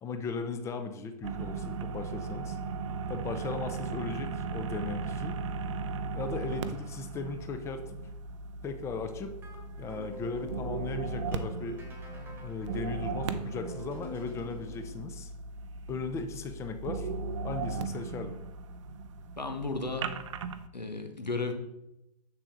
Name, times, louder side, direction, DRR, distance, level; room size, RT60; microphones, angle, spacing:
voice 1, 0.0-2.6 3.1-5.3 6.1-7.8 8.6-9.4 9.8-11.8 12.4-15.3 15.9-17.1 17.4-18.4, left 4 dB, 15° left, 7 dB, 0.6 m, -37 dB
sound 1, 1.2-20.7, right 4 dB, 45° right, 0.6 m, -37 dB
sound 2, 9.2-15.0, left 1 dB, 10° right, 1.4 m, -47 dB
voice 2, 19.4-20.1 20.7-21.5, left 3 dB, 85° left, 5 dB, 1.3 m, -34 dB
7.3 x 6.7 x 3.6 m, 0.87 s
figure-of-eight pair, 115°, 21 cm